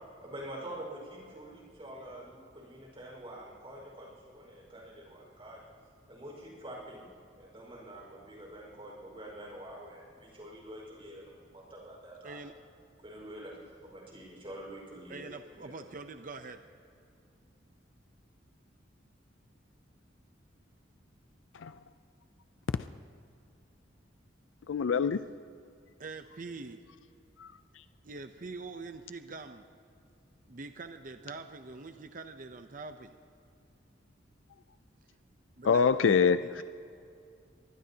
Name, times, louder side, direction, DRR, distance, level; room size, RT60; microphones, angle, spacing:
voice 1, 0.2-5.6 6.1-7.1 7.4-12.4 13.0-15.8, right 1 dB, 30° right, -1 dB, 4.8 m, -46 dB
voice 2, 15.1-16.6 26.0-26.8 28.0-29.6 30.5-33.2 35.6-36.6, right 3 dB, 45° right, 8 dB, 0.6 m, -44 dB
voice 3, 24.7-25.2 27.4-27.5 35.6-36.4, left 6 dB, 80° left, 12 dB, 0.4 m, -24 dB
24.0 x 20.5 x 2.9 m, 2.4 s
head